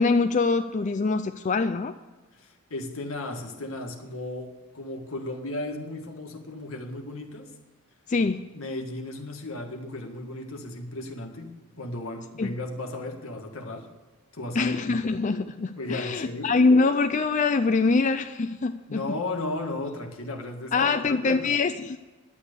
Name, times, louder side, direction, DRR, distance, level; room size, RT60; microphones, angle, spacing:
voice 1, 0.0-1.9 8.1-8.4 12.4-12.5 14.6-19.0 20.7-22.0, left 4 dB, 35° left, 8 dB, 0.4 m, -24 dB
voice 2, 2.3-7.5 8.5-13.9 14.3-15.0 15.8-16.5 18.9-21.5, left 2 dB, 80° left, 3 dB, 1.8 m, -35 dB
11.5 x 8.9 x 6.8 m, 1.2 s
head